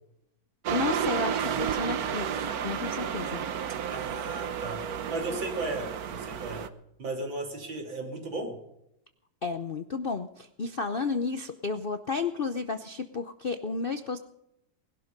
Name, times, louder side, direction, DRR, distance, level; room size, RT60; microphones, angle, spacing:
sound 1, 0.6-6.7, right 8 dB, 60° right, 1.3 m, -32 dB
voice 1, 0.7-3.4 9.4-14.2, left 4 dB, 55° left, 9 dB, 0.6 m, -32 dB
voice 2, 3.9-6.6 7.0-8.6, right 2 dB, 80° right, 2 dB, 3.9 m, -35 dB
20.5 x 11.5 x 5.3 m, 0.80 s
omnidirectional pair, 2.0 m